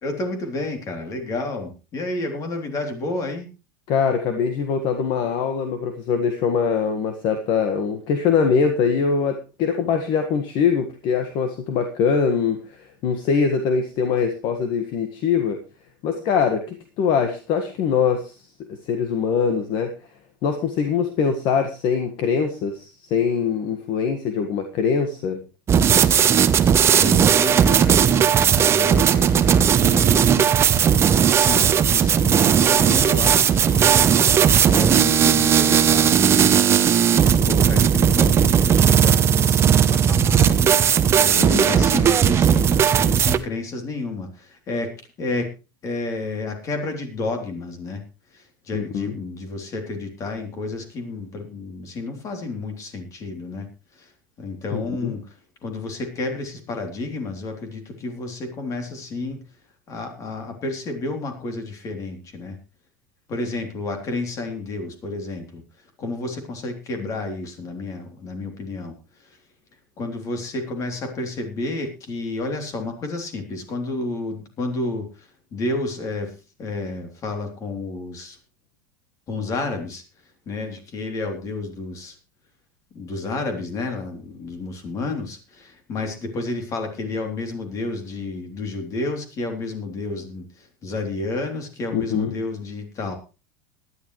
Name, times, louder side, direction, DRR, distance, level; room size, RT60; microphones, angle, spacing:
voice 1, 0.0-3.5 26.9-30.5 31.3-34.1 34.7-40.7 41.2-44.9 45.2-45.5 45.8-48.0 48.3-54.1 54.4-55.3 55.6-59.4 59.9-62.6 63.3-65.6 66.0-68.9 69.2-69.3 70.0-76.3 76.6-78.4 79.3-80.0 80.5-82.2 82.9-93.2, left 2 dB, 30° left, 5 dB, 3.1 m, -30 dB
voice 2, 3.9-15.6 16.0-18.3 18.7-19.9 20.4-25.4 41.4-41.8 48.7-49.1 54.7-55.1 91.9-92.3, left 6 dB, 45° left, 6 dB, 1.6 m, -23 dB
sound 1, 25.7-43.4, right 8 dB, 25° right, 0.8 m, -17 dB
18.5 x 11.0 x 3.2 m, 0.31 s
supercardioid pair, 145°, 11 cm